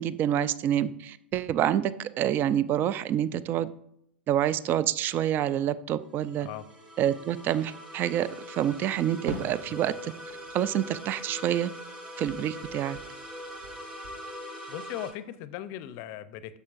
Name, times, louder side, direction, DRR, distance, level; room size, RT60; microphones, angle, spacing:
voice 1, 0.0-3.7 4.3-6.5 7.0-10.1 10.5-11.7 12.2-13.0, right 11 dB, 35° right, 17 dB, 0.4 m, -27 dB
sound 1, 6.0-15.1, equal, 15° right, 1.2 m, -42 dB
Fireworks, 9.3-11.9 12.2-14.2, right 2 dB, 55° right, 1.2 m, -45 dB
voice 2, 14.7-16.6, left 12 dB, 45° left, 15 dB, 0.6 m, -38 dB
10.5 x 6.8 x 2.5 m, 0.74 s
figure-of-eight pair, 95°, 6 cm